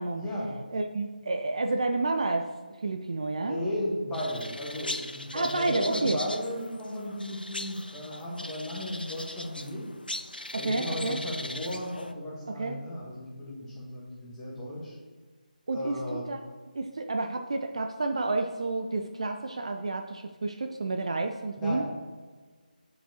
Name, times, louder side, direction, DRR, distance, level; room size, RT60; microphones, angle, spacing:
voice 1, 0.2-0.6 3.4-9.8 10.6-14.9 15.7-16.3 21.6-21.8, left 1 dB, 5° left, -8 dB, 1.1 m, -35 dB
voice 2, 0.7-2.5 2.8-3.6 5.3-6.2 10.5-11.2 12.5-12.8 15.7-16.4 16.7-21.8, right 2 dB, 40° right, 5 dB, 0.3 m, -30 dB
sound 1, 4.1-12.1, left 1 dB, 85° left, 0.5 m, -39 dB
8.8 x 4.7 x 2.8 m, 1.4 s
figure-of-eight pair, 155°, 5 cm